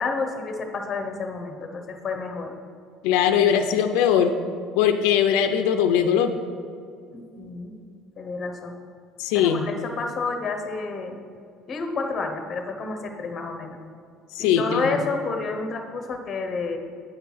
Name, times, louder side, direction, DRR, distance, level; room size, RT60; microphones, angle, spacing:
voice 1, 0.0-2.5 7.1-7.7 8.2-8.7 9.3-11.2 11.7-13.8 14.4-16.8, left 4 dB, 30° left, 5 dB, 0.8 m, -30 dB
voice 2, 3.0-4.3 4.8-6.4 9.2-9.6 14.4-15.0, left 8 dB, 85° left, 7 dB, 0.4 m, -20 dB
8.8 x 4.6 x 5.5 m, 2.3 s
cardioid pair, 155°, 0 cm